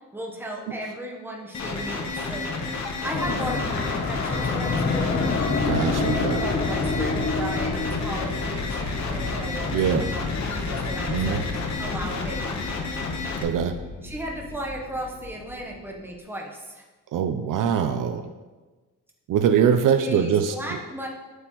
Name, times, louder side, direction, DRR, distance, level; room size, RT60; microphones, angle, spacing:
voice 1, 0.1-5.4 6.4-11.4 11.8-12.6 14.0-16.8 20.0-21.1, right 1 dB, 5° right, -1 dB, 1.0 m, -35 dB
sound 1, 1.5-13.4, left 3 dB, 55° left, 1.1 m, -31 dB
sound 2, 3.1-15.7, left 4 dB, 35° left, 0.7 m, -29 dB
voice 2, 5.6-6.4 9.7-10.1 11.1-11.4 13.4-13.8 17.1-18.3 19.3-20.8, right 8 dB, 70° right, 9 dB, 0.6 m, -23 dB
7.9 x 7.8 x 3.0 m, 1.3 s
wide cardioid pair, 165°, 33 cm